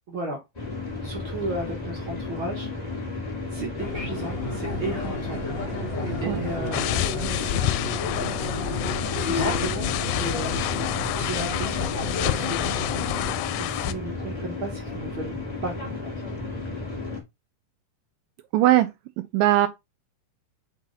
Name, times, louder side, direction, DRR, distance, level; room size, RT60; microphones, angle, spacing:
voice 1, 0.1-0.4 1.0-2.7 3.5-5.5 6.2-7.7 9.2-10.8 11.1-12.8 13.5-15.3 15.6-15.9, right 2 dB, 50° right, 1.7 m, -34 dB
sound 1, 0.5-17.2, left 3 dB, 20° left, 1.2 m, -33 dB
sound 2, 3.8-13.3, left 2 dB, 50° left, 1.4 m, -32 dB
sound 3, 6.7-13.9, left 14 dB, 85° left, 2.3 m, -29 dB
voice 2, 18.5-18.9 19.2-19.7, right 14 dB, 80° right, 2.2 m, -20 dB
6.1 x 4.1 x 4.0 m
omnidirectional pair, 4.1 m